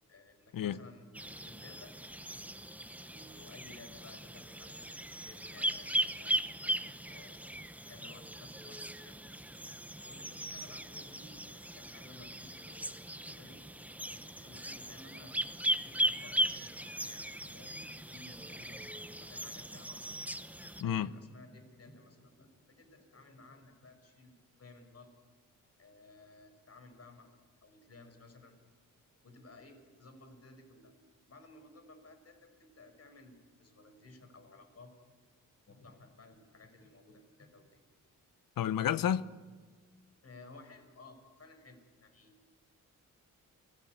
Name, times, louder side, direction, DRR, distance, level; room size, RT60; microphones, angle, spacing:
voice 1, 0.1-1.2 1.4-2.0 3.1-4.7 5.2-9.3 10.1-13.0 13.3-13.6 14.1-15.4 15.8-20.1 20.8-25.1 25.8-28.5 29.2-30.9 31.3-34.9 35.7-37.8 40.2-42.4, left 2 dB, 45° left, 6.0 m, -56 dB
sound 1, 1.1-20.8, right 1 dB, 5° right, 1.0 m, -38 dB
voice 2, 38.6-39.3, left 10 dB, 85° left, 1.0 m, -30 dB
30.0 x 21.0 x 9.6 m
cardioid pair, 95°, 33 cm